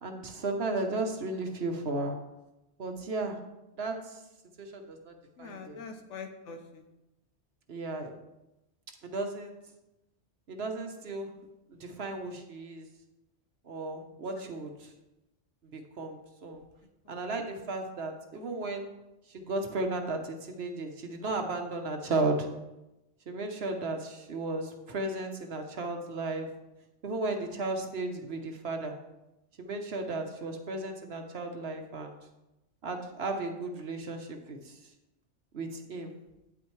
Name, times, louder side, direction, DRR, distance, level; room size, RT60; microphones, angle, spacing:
voice 1, 0.0-2.2 2.8-3.4 3.8-4.2 4.6-5.1 5.4-5.8 7.7-8.1 9.0-9.6 10.5-11.3 11.7-12.9 13.6-14.9 15.7-16.6 17.1-18.8 19.3-22.5 23.3-26.5 27.0-28.9 29.6-32.1 32.8-34.8 35.5-36.1, right 2 dB, 60° right, 4 dB, 1.1 m, -34 dB
voice 2, 5.4-6.9 14.3-14.5 17.0-17.2 30.1-30.3 36.0-36.2, left 5 dB, 75° left, 6 dB, 1.1 m, -45 dB
9.0 x 8.6 x 3.2 m, 0.96 s
omnidirectional pair, 1.2 m